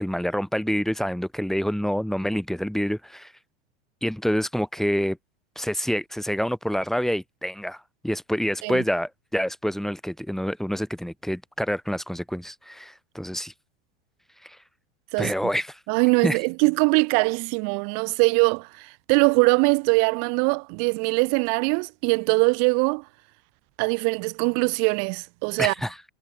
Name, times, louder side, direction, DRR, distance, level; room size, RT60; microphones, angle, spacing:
voice 1, 0.0-3.3 4.0-5.2 5.6-13.5 14.4-14.6 15.2-15.8 16.2-16.4 25.6-26.0, equal, ahead, 7.2 m, -27 dB
voice 2, 15.9-23.0 23.8-25.7, right 39 dB, 55° right, 4.5 m, -22 dB
hypercardioid pair, 105°, 31 cm